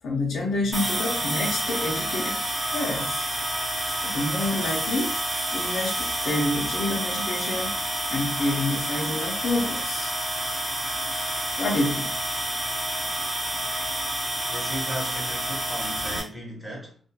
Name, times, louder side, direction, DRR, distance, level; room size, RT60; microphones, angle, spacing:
voice 1, 0.0-2.4 2.7-3.3 4.0-5.2 5.5-7.8 8.1-10.1 11.6-12.2, left 2 dB, 85° left, 0.5 m, -28 dB
sound 1, 0.7-16.2, right 1 dB, 45° right, 1.1 m, -29 dB
voice 2, 14.5-17.0, equal, 5° right, 1.0 m, -36 dB
2.2 x 2.2 x 2.8 m
cardioid pair, 120°, 0 cm